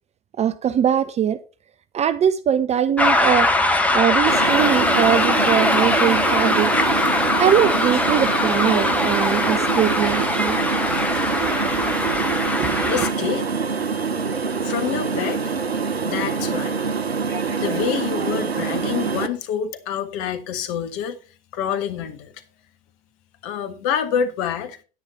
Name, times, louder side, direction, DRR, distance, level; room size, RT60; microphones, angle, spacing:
voice 1, 0.4-1.4 1.9-3.5 3.9-6.7 7.4-10.6 12.6-13.1, right 9 dB, 20° right, 0.6 m, -21 dB
sound 1, 3.0-13.1, left 2 dB, 5° left, 1.5 m, -21 dB
sound 2, 4.3-19.3, right 5 dB, 85° right, 0.7 m, -25 dB
voice 2, 12.9-13.5 14.6-15.5 16.0-16.9 17.6-21.2 21.5-22.3 23.4-24.8, left 8 dB, 45° left, 1.7 m, -27 dB
9.8 x 9.7 x 4.3 m
figure-of-eight pair, 80°, 30 cm